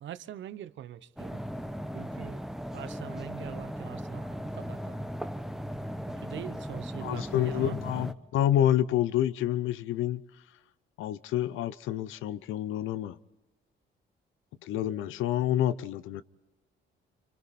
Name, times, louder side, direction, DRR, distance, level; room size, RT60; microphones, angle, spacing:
voice 1, 0.0-1.4 1.9-2.4 2.7-5.0 6.1-7.8, right 11 dB, 70° right, 0.9 m, -43 dB
sound 1, 1.2-8.1, equal, ahead, 0.9 m, -37 dB
voice 2, 7.0-10.2 11.0-13.2 14.6-16.2, left 11 dB, 90° left, 0.7 m, -28 dB
27.5 x 25.5 x 4.2 m
cardioid pair, 90°, 20 cm